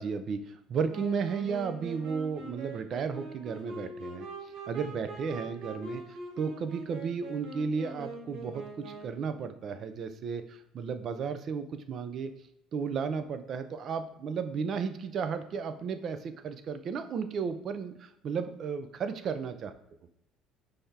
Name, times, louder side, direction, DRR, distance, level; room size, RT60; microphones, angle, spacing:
voice 1, 0.0-12.3 12.7-19.7, right 6 dB, 50° right, 10 dB, 0.5 m, -34 dB
Wind instrument woodwind instrument, 0.9-9.3, right 2 dB, 80° right, 1.4 m, -43 dB
5.6 x 3.3 x 2.8 m, 0.83 s
supercardioid pair, 90°, 0 cm